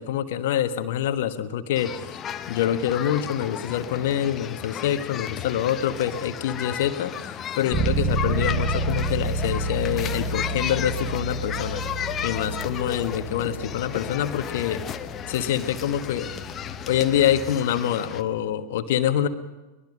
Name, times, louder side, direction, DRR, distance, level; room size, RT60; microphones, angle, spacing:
voice 1, 0.0-2.0 2.5-11.8 12.2-14.8 15.3-16.3 16.9-19.3, left 10 dB, 55° left, 10 dB, 1.3 m, -25 dB
sound 1, 1.8-18.2, left 9 dB, 25° left, 0.9 m, -34 dB
Bass guitar, 7.7-17.4, right 2 dB, 15° right, 6.3 m, -30 dB
23.0 x 21.0 x 5.5 m, 1.1 s
figure-of-eight pair, 90°, 0 cm